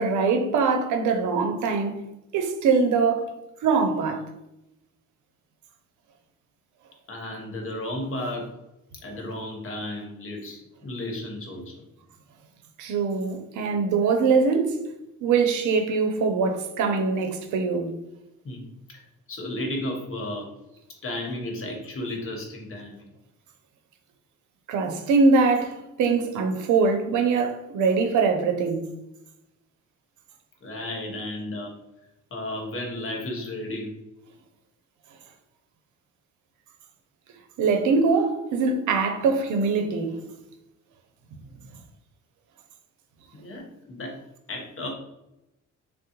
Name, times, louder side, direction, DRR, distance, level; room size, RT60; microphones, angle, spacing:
voice 1, 0.0-2.0 2.3-3.3 3.6-4.3 12.8-14.8 15.2-17.9 24.7-28.9 37.6-40.2, right 4 dB, 75° right, 0.6 m, -23 dB
voice 2, 7.1-8.5 9.0-11.9 18.4-18.6 18.9-19.0 19.3-20.5 21.0-23.1 30.6-31.7 32.3-33.9 43.3-44.2 44.5-44.9, left 1 dB, 45° left, 1.0 m, -33 dB
3.7 x 2.0 x 2.9 m
cardioid pair, 90°, 30 cm